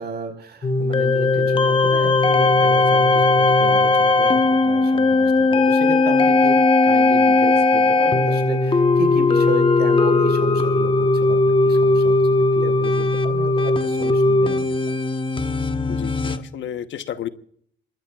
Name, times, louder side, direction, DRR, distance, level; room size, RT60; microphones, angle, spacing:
voice 1, 0.0-6.6 6.8-14.7, right 4 dB, 55° right, 5 dB, 4.8 m, -33 dB
sound 1, 0.6-16.4, left 3 dB, 25° left, 1.2 m, -18 dB
voice 2, 15.9-17.3, left 10 dB, 70° left, 11 dB, 1.1 m, -31 dB
26.5 x 21.0 x 2.4 m, 0.63 s
cardioid pair, 90°, 20 cm